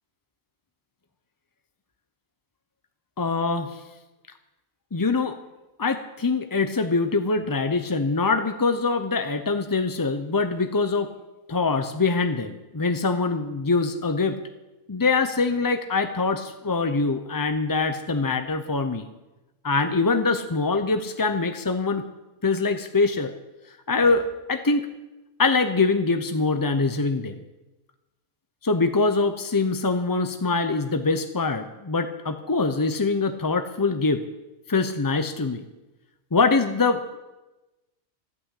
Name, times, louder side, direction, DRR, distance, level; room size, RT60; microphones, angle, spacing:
voice 1, 3.2-3.8 4.9-5.3 5.8-11.1 11.5-14.4 14.9-19.1 19.6-22.0 22.4-23.3 23.9-24.9 25.4-27.4 28.6-34.2 34.7-35.6 36.3-37.2, left 3 dB, 30° left, 8 dB, 0.4 m, -24 dB
14.5 x 9.4 x 8.2 m, 1.1 s
omnidirectional pair, 1.4 m